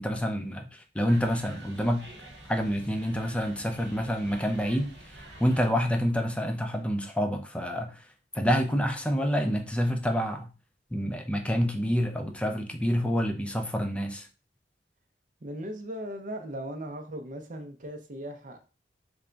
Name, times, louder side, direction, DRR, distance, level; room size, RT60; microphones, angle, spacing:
voice 1, 0.0-2.1 2.5-8.1 8.3-10.5 10.9-14.3, equal, 5° left, 0.4 m, -28 dB
sound 1, 1.1-5.7, right 1 dB, 85° right, 1.2 m, -47 dB
voice 2, 15.4-18.6, right 1 dB, 50° right, 0.6 m, -38 dB
3.4 x 2.2 x 3.8 m
head